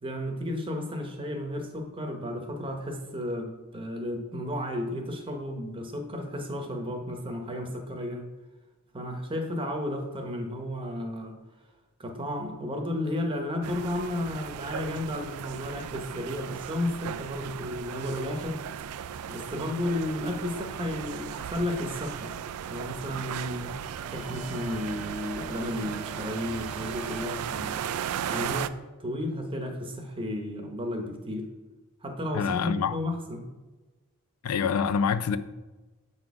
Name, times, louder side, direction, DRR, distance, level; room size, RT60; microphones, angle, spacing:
voice 1, 0.0-8.3 8.9-11.4 12.0-18.6 19.3-22.3 22.7-23.7 24.1-27.8 28.3-28.7 29.0-31.5 32.0-33.4, left 1 dB, 25° right, 0.9 m, -33 dB
sound 1, 13.6-28.7, right 8 dB, 85° right, 0.3 m, -36 dB
sound 2, 24.0-27.9, left 1 dB, 5° right, 0.5 m, -48 dB
voice 2, 32.3-33.0 34.4-35.4, left 6 dB, 85° left, 0.4 m, -26 dB
7.6 x 4.1 x 4.7 m
head